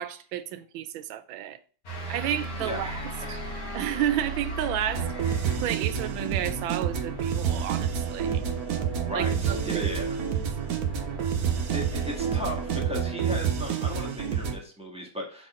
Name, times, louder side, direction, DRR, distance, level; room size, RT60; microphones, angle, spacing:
voice 1, 0.0-1.6 2.1-2.9 3.3-3.4 3.7-8.4 9.1-9.9, right 11 dB, 90° right, 1.4 m, -31 dB
sound 1, 1.9-12.8, right 1 dB, 50° left, 2.2 m, -38 dB
voice 2, 2.6-3.4 9.0-10.2 11.7-15.5, equal, 5° right, 1.4 m, -36 dB
sound 2, 4.9-14.6, right 8 dB, 60° right, 1.1 m, -28 dB
6.1 x 4.2 x 3.7 m
omnidirectional pair, 2.1 m